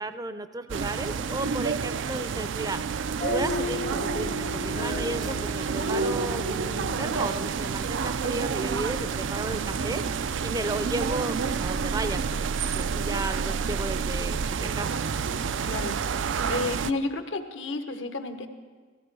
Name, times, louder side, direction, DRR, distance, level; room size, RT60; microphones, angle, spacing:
voice 1, 0.0-12.2 12.5-15.1, right 2 dB, 20° right, 10 dB, 0.5 m, -34 dB
sound 1, 0.7-16.9, right 5 dB, 75° right, 0.4 m, -29 dB
sound 2, 3.2-8.7, left 4 dB, 40° left, 0.5 m, -36 dB
voice 2, 15.6-16.0 16.5-18.5, left 2 dB, 75° left, 7 dB, 1.2 m, -31 dB
17.5 x 15.5 x 4.7 m, 1.5 s
head